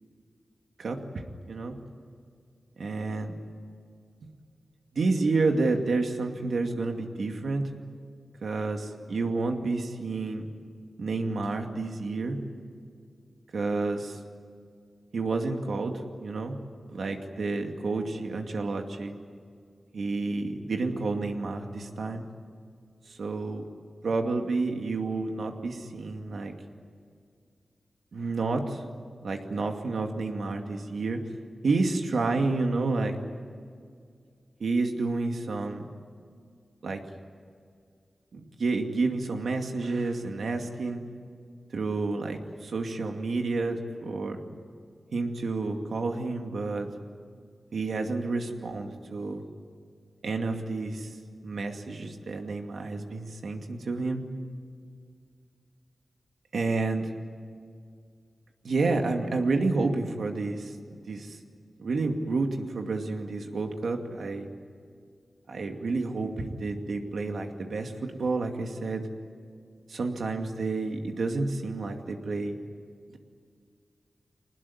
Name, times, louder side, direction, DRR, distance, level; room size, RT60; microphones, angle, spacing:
voice 1, 2.8-3.3 4.9-7.6 8.4-10.5 11.0-12.4 13.5-14.2 15.1-16.6 16.9-19.1 19.9-22.2 23.1-23.6 24.0-26.5 28.1-28.8 29.2-31.2 31.6-33.2 34.6-35.9 36.8-37.0 38.3-41.0 41.7-44.4 45.1-46.9 47.7-49.4 50.2-51.1 51.4-54.2 56.5-57.1 58.6-60.8 61.1-61.4 61.8-64.5 65.5-69.0 69.9-72.6, right 3 dB, 80° right, 4 dB, 2.4 m, -30 dB
25.0 x 19.5 x 9.6 m, 2.2 s
wide cardioid pair, 85°, 0 cm